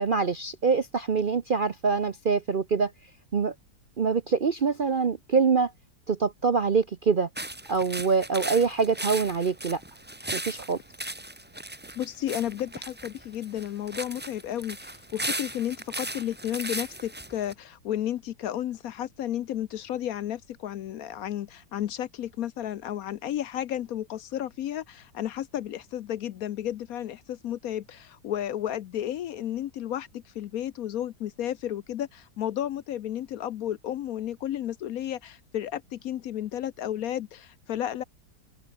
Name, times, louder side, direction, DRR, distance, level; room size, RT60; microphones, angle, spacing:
voice 1, 0.0-2.9 3.3-3.5 4.0-5.7 6.1-7.3 7.7-9.8 10.3-10.8, right 5 dB, 50° right, 0.6 m, -25 dB
sound 1, 7.4-17.5, right 1 dB, 10° right, 0.7 m, -37 dB
voice 2, 12.0-38.0, left 11 dB, 65° left, 1.0 m, -32 dB
open air
omnidirectional pair, 1.8 m